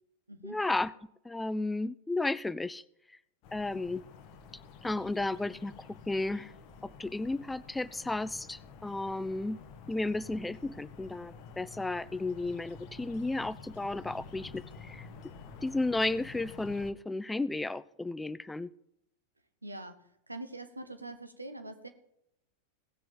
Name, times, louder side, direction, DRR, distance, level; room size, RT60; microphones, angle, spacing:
voice 1, 0.4-0.9 1.2-3.2 3.5-4.0 4.8-6.5 6.8-9.6 9.9-15.1 15.6-18.7, left 2 dB, 5° left, 18 dB, 0.4 m, -33 dB
sound 1, 3.4-16.9, left 5 dB, 45° left, 1.1 m, -50 dB
voice 2, 19.6-20.0 20.3-21.9, right 2 dB, 85° right, 7 dB, 1.2 m, -43 dB
17.5 x 7.5 x 3.8 m, 0.78 s
figure-of-eight pair, 90°, 0 cm